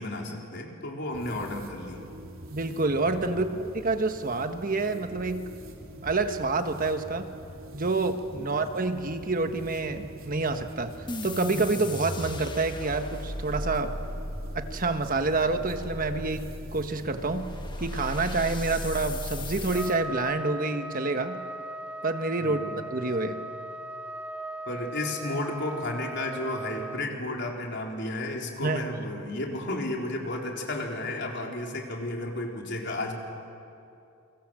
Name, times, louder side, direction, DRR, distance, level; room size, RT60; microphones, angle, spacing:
voice 1, 0.0-2.0 3.3-3.5 8.3-8.6 22.4-22.7 24.7-33.1, left 2 dB, 55° left, 0 dB, 4.0 m, -33 dB
sound 1, 1.1-19.9, right 1 dB, 75° right, 3.2 m, -45 dB
voice 2, 2.5-3.5 3.7-5.4 6.0-7.2 7.7-10.9 11.2-13.9 14.5-17.4 17.8-21.4 22.0-22.6 22.9-23.4 28.6-28.8, right 3 dB, 40° right, 7 dB, 1.2 m, -28 dB
sound 2, 11.1-20.0, left 1 dB, 20° left, 1.4 m, -37 dB
Trumpet, 19.7-27.0, right 1 dB, 5° right, 0.6 m, -38 dB
29.0 x 25.5 x 7.7 m, 2.7 s
head